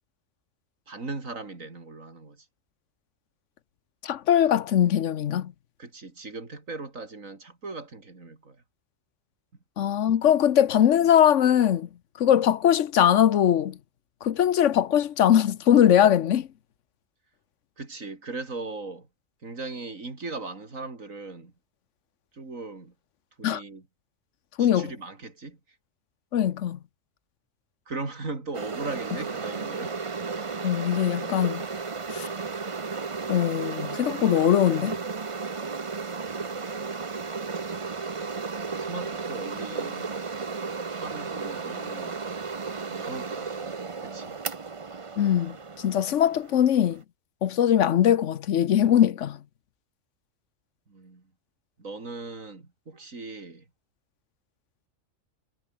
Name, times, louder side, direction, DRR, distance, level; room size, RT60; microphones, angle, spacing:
voice 1, 0.9-2.5 5.8-8.6 17.8-19.1 19.4-21.5 22.3-22.9 23.4-23.8 24.6-25.6 27.9-30.0 36.2-36.7 38.8-40.2 40.8-42.2 42.9-44.4 50.9-51.2 51.8-53.7, right 3 dB, 85° right, 4.1 m, -38 dB
voice 2, 4.0-5.5 9.8-11.9 12.2-13.8 14.2-16.5 23.4-23.6 24.6-24.9 26.3-26.8 30.6-31.6 32.1-32.3 33.3-34.9 45.2-47.0 47.4-49.4, left 10 dB, 70° left, 1.1 m, -21 dB
sound 1, 28.5-47.0, right 4 dB, 30° right, 0.8 m, -34 dB
omnidirectional pair, 1.4 m